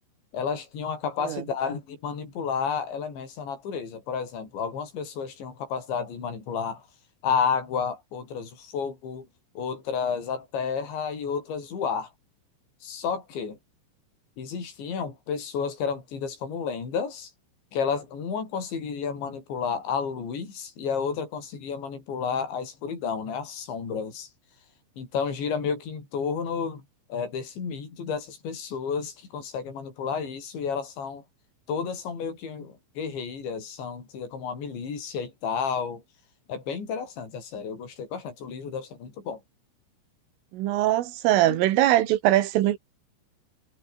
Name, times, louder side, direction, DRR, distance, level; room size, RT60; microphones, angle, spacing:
voice 1, 0.3-6.8 7.2-9.3 9.6-12.1 12.8-13.6 14.4-17.3 17.7-24.3 25.0-26.8 27.1-31.2 31.7-36.0 36.5-39.4 41.5-41.6, left 6 dB, 60° left, 8.9 m, -31 dB
voice 2, 40.5-42.8, right 14 dB, 80° right, 4.1 m, -22 dB
omnidirectional pair, 5.8 m